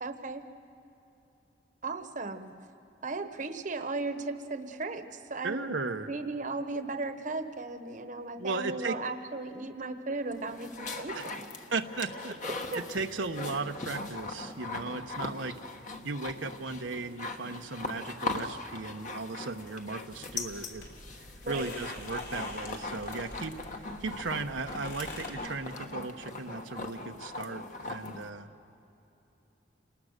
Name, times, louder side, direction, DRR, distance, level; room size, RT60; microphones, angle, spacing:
voice 1, 0.0-0.4 1.8-2.5 3.0-5.7 6.1-11.4 12.4-12.8 21.4-21.7, right 3 dB, 45° right, 8 dB, 1.1 m, -36 dB
voice 2, 5.4-6.1 8.4-9.0 11.1-11.2 11.7-12.3 12.7-15.5 16.0-20.8 21.1-23.6 24.0-28.5, right 3 dB, 85° right, 5 dB, 0.9 m, -36 dB
sound 1, 10.3-28.3, left 2 dB, 40° left, 1.4 m, -40 dB
sound 2, 20.3-25.3, left 2 dB, 85° left, 6.0 m, -47 dB
29.5 x 19.5 x 6.6 m, 2.9 s
head